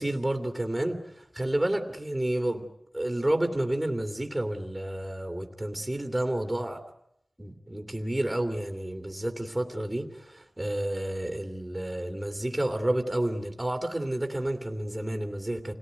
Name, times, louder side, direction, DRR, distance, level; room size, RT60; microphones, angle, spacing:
voice 1, 0.0-2.7 2.9-6.8 7.4-15.7, right 1 dB, 15° right, 5 dB, 2.6 m, -30 dB
28.0 x 18.0 x 9.4 m, 0.79 s
wide cardioid pair, 80°, 0 cm